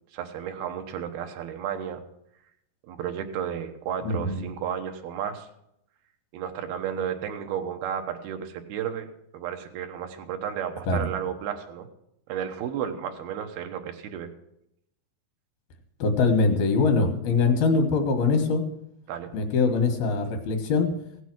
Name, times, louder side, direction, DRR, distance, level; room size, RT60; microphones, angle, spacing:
voice 1, 0.1-2.0 2.9-5.5 6.3-9.1 9.3-11.9 12.3-14.3 19.1-19.3, right 9 dB, 90° right, 5 dB, 3.0 m, -33 dB
voice 2, 4.0-4.4 10.9-11.1 16.0-18.6 19.3-20.9, left 4 dB, 80° left, 5 dB, 3.4 m, -23 dB
17.0 x 8.1 x 6.1 m, 0.79 s
omnidirectional pair, 4.3 m